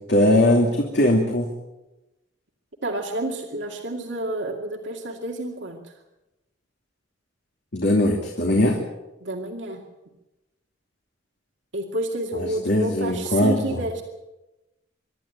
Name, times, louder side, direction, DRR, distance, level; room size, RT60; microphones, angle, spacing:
voice 1, 0.1-1.5 7.7-8.8 12.7-13.6, left 1 dB, 60° left, 0 dB, 2.6 m, -19 dB
voice 2, 2.8-5.9 9.2-9.8 11.7-14.0, right 1 dB, 70° right, 2 dB, 2.3 m, -29 dB
24.5 x 12.5 x 8.8 m, 1.0 s
head